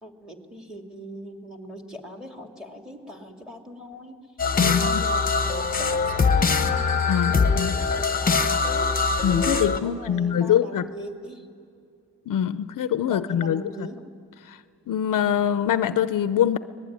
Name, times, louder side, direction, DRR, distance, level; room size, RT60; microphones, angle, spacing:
voice 1, 0.0-4.2 4.6-9.0 9.8-11.5 13.0-14.0, equal, ahead, 3 dB, 2.4 m, -41 dB
sound 1, 4.4-9.8, left 4 dB, 25° left, 1.3 m, -22 dB
voice 2, 4.6-5.1 7.1-7.8 9.2-10.9 12.3-13.9 14.5-14.6 14.9-16.6, left 9 dB, 70° left, 13 dB, 0.7 m, -24 dB
24.5 x 19.5 x 9.5 m, 2.4 s
wide cardioid pair, 130°, 34 cm